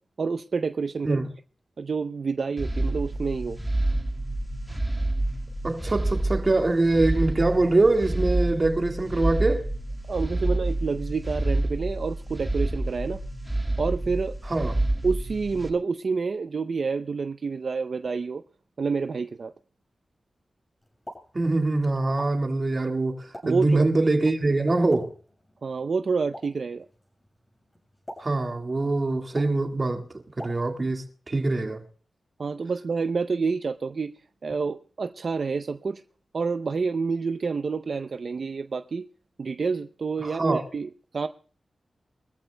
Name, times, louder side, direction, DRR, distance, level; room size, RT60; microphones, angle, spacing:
voice 1, 0.2-1.2 1.8-3.6 10.1-13.2 13.8-14.3 15.0-18.4 18.8-19.5 23.4-23.9 25.6-26.9 32.4-34.1 34.4-36.0 36.3-39.1 39.4-41.3, right 4 dB, 60° right, 0.5 m, -28 dB
sound 1, 2.6-15.7, right 1 dB, 10° right, 1.6 m, -28 dB
voice 2, 5.6-9.7 14.5-14.8 21.3-25.1 28.2-30.1 30.4-31.8 40.2-40.6, right 2 dB, 35° right, 1.8 m, -24 dB
Explosion, 20.8-31.1, equal, 15° left, 6.6 m, -48 dB
23.5 x 14.5 x 2.2 m
wide cardioid pair, 100°, 0 cm